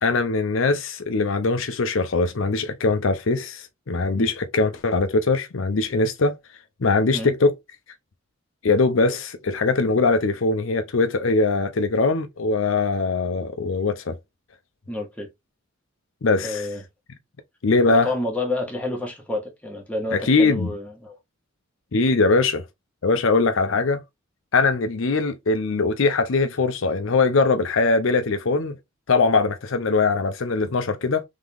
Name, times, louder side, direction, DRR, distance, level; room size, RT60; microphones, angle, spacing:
voice 1, 0.0-6.4 6.8-7.5 8.6-14.2 16.2-16.7 17.6-18.1 20.1-20.7 21.9-22.6 23.0-24.0 24.5-28.8 29.1-31.2, left 3 dB, 65° left, 0.6 m, -21 dB
voice 2, 14.9-15.3 16.4-16.8 17.9-21.2, left 2 dB, 5° left, 1.5 m, -29 dB
3.7 x 3.6 x 3.4 m
head